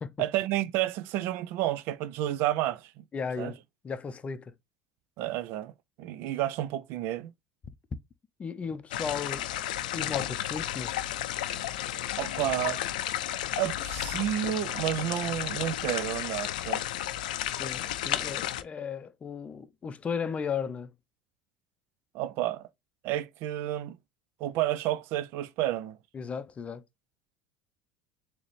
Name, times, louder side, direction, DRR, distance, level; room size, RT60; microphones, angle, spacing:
voice 1, 0.2-3.0 3.4-3.5 5.2-5.7 6.0-7.3 12.2-12.8 13.6-16.8 22.1-22.7 23.0-24.0 24.4-26.0, right 13 dB, 60° right, 0.4 m, -30 dB
voice 2, 3.1-3.6 3.8-4.5 8.4-9.5 9.9-10.9 17.6-20.9 26.1-26.8, left 6 dB, 30° left, 0.5 m, -35 dB
sound 1, 8.9-18.6, left 12 dB, 80° left, 0.4 m, -33 dB
4.0 x 2.9 x 3.1 m
hypercardioid pair, 80°, 4 cm